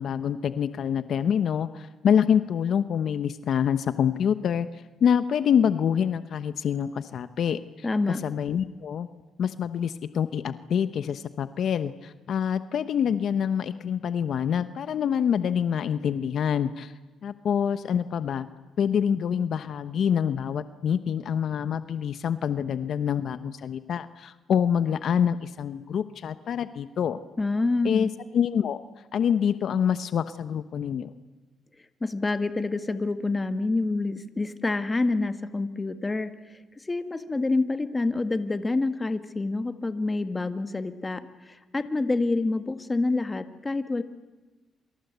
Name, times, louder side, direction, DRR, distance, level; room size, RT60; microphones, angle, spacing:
voice 1, 0.0-7.9 8.2-9.1 9.4-16.9 17.2-18.5 18.8-27.2 27.8-28.8 29.1-31.1, left 8 dB, 65° left, 12 dB, 1.0 m, -26 dB
voice 2, 7.8-8.2 27.4-28.1 32.0-44.0, left 3 dB, 20° left, 10 dB, 1.8 m, -27 dB
27.5 x 25.5 x 8.2 m, 1.2 s
cardioid pair, 90°, 0 cm